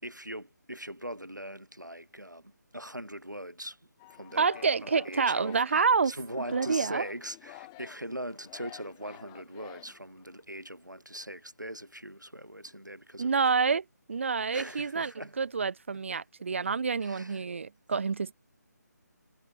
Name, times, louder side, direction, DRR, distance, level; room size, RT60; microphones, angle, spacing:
voice 1, 0.0-3.8 4.1-4.5 4.8-13.5 14.5-15.3 16.1-16.2 17.0-17.5, equal, 90° right, 5.2 m, -41 dB
Singing, 4.0-10.4, left 24 dB, 15° left, 5.3 m, -50 dB
voice 2, 4.4-6.1 6.5-7.1 13.2-18.3, right 5 dB, 45° right, 1.6 m, -28 dB
figure-of-eight pair, 155°, 10 cm